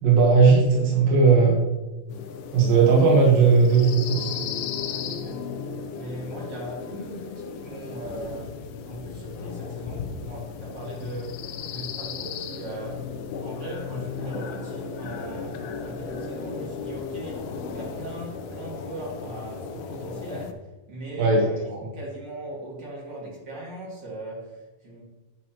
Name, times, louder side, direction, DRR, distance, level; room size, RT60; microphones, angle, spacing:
voice 1, 0.0-1.6 2.5-4.3 21.2-21.8, right 4 dB, 65° right, -3 dB, 2.6 m, -17 dB
sound 1, 2.1-20.5, left 6 dB, 80° left, 2.2 m, -35 dB
voice 2, 4.9-5.4 5.9-13.1 13.4-25.0, right 1 dB, 45° right, -5 dB, 1.5 m, -39 dB
8.9 x 8.1 x 2.9 m, 1.1 s
omnidirectional pair, 5.0 m